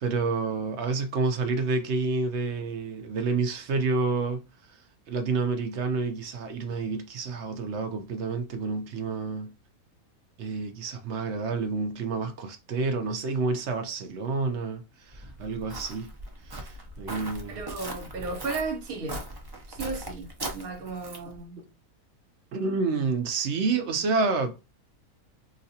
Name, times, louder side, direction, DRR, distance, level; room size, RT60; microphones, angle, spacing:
voice 1, 0.0-4.4 5.1-9.5 10.4-16.1 16.4-17.6 21.6-21.7 22.5-24.6, right 4 dB, 60° right, 0.8 m, -29 dB
Walk footsteps, 15.1-21.4, right 1 dB, 35° right, 0.4 m, -39 dB
voice 2, 17.5-19.2 19.7-21.6, right 3 dB, 75° right, 1.4 m, -35 dB
3.9 x 2.5 x 2.7 m
omnidirectional pair, 1.5 m